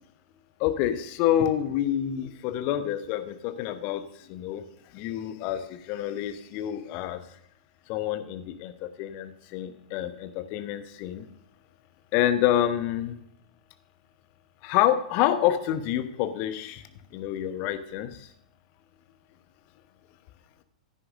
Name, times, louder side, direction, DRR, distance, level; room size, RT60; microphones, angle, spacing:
voice 1, 0.6-4.0 4.3-4.6 4.9-7.2 7.9-11.2 12.1-13.2 14.6-16.8 17.1-18.3, left 11 dB, 40° left, 10 dB, 1.0 m, -27 dB
16.0 x 9.8 x 2.6 m, 0.71 s
figure-of-eight pair, 100°, 4 cm